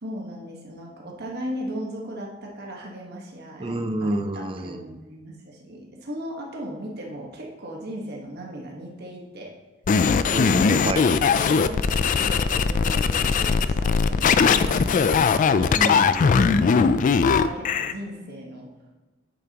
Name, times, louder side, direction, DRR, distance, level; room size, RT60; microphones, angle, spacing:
voice 1, 0.0-9.5 11.0-16.3 17.3-18.7, equal, 55° right, -1 dB, 1.4 m, -37 dB
voice 2, 3.6-5.0 10.3-11.1 15.7-16.9, right 1 dB, 30° right, 8 dB, 0.5 m, -29 dB
sound 1, 9.9-17.9, left 5 dB, 40° left, 0.3 m, -20 dB
8.6 x 6.9 x 2.9 m, 1.2 s
head